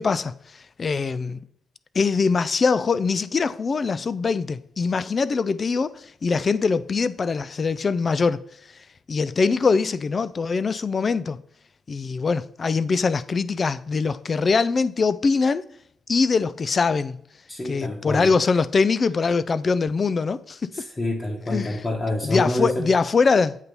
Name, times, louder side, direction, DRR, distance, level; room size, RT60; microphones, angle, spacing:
voice 1, 0.0-1.4 1.9-8.4 9.1-11.4 11.9-15.6 16.1-17.2 17.6-20.9 21.5-21.8 22.2-23.6, left 4 dB, 45° left, 0.4 m, -23 dB
voice 2, 17.5-18.3 20.7-22.9, left 1 dB, 30° left, 1.4 m, -27 dB
8.1 x 2.9 x 5.4 m
cardioid pair, 70°, 0 cm